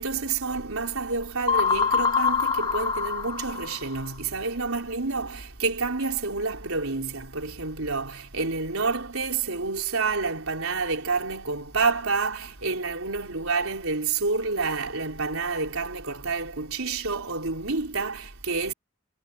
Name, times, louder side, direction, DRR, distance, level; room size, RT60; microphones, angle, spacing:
voice 1, 0.0-18.7, right 4 dB, 80° right, 4.1 m, -28 dB
sound 1, 1.5-4.1, left 6 dB, 20° left, 1.2 m, -24 dB
head